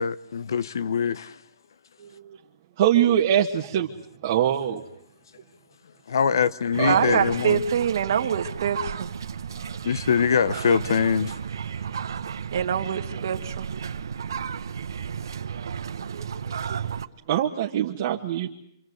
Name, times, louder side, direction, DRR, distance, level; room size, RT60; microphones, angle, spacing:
voice 1, 0.0-1.4 6.1-7.6 9.8-11.3, left 6 dB, 75° left, 1.1 m, -23 dB
voice 2, 2.0-2.4 2.8-3.9 4.2-4.8 6.8-7.2 16.1-16.3 16.7-16.8 17.3-18.5, right 10 dB, 40° right, 1.6 m, -23 dB
sound 1, 6.7-17.0, right 7 dB, 80° right, 1.4 m, -33 dB
voice 3, 6.9-9.1 12.5-13.7, right 8 dB, 60° right, 2.2 m, -25 dB
27.5 x 25.5 x 8.1 m
hypercardioid pair, 165°, 2 cm